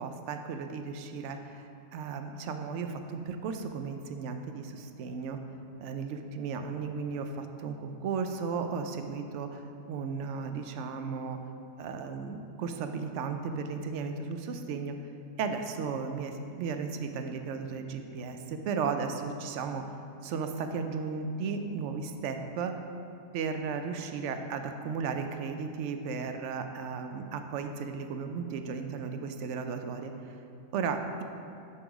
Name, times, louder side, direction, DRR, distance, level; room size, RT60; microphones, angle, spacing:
voice 1, 0.0-5.4 5.8-9.6 9.9-11.4 11.8-14.9 15.4-19.9 20.2-22.8 23.3-30.3 30.7-31.2, right 5 dB, 75° right, 6 dB, 0.9 m, -35 dB
6.7 x 3.7 x 6.0 m, 2.6 s
omnidirectional pair, 1.3 m